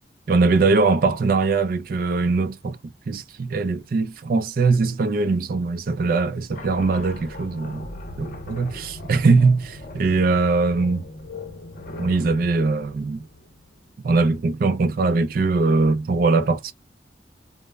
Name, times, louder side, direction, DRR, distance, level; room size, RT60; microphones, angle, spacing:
voice 1, 0.3-2.8 3.1-7.9 8.2-11.1 12.0-13.2 14.0-16.7, right 3 dB, 55° right, 0.4 m, -21 dB
sound 1, 6.5-13.9, left 2 dB, 50° left, 0.7 m, -39 dB
2.0 x 2.0 x 3.3 m
head